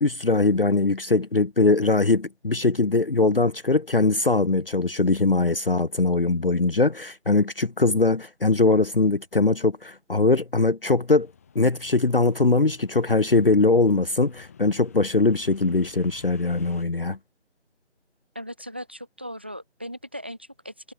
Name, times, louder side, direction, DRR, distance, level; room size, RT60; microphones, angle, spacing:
voice 1, 0.0-11.3 11.5-17.2, left 3 dB, 50° left, 0.7 m, -21 dB
sound 1, 11.2-16.8, left 7 dB, 10° left, 5.4 m, -51 dB
voice 2, 18.3-20.9, equal, 10° right, 1.5 m, -38 dB
figure-of-eight pair, 175°, 36 cm